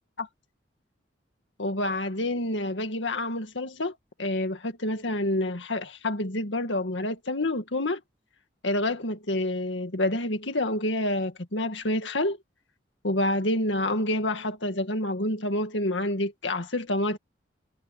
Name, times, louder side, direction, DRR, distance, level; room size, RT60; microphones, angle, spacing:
voice 1, 1.6-8.0 8.6-12.4 13.0-17.2, left 1 dB, 75° left, 2.0 m, -28 dB
head